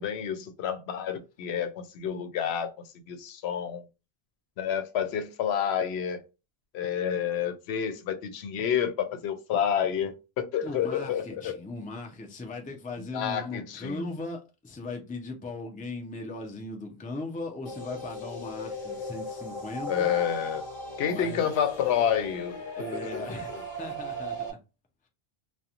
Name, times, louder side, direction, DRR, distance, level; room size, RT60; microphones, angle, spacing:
voice 1, 0.0-2.7 3.1-3.8 4.6-6.2 6.7-11.6 13.1-14.0 19.9-20.7 21.0-22.6 22.9-23.3 23.5-23.6, left 8 dB, 85° left, 0.8 m, -29 dB
voice 2, 10.6-20.1 21.1-21.4 22.7-24.5, left 2 dB, 15° left, 0.3 m, -38 dB
sound 1, 17.7-24.5, equal, 55° left, 0.8 m, -38 dB
2.8 x 2.2 x 2.4 m
omnidirectional pair, 1.1 m